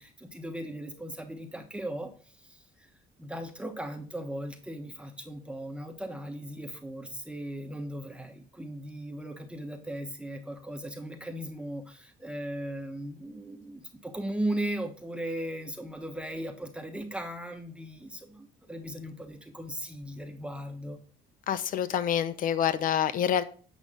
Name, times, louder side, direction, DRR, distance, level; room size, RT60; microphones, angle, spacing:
voice 1, 0.0-2.9 3.2-21.0, right 1 dB, 5° right, 4 dB, 1.1 m, -37 dB
voice 2, 21.5-23.4, left 9 dB, 55° left, 14 dB, 0.7 m, -27 dB
8.6 x 5.3 x 3.7 m, 0.41 s
cardioid pair, 110°, 17 cm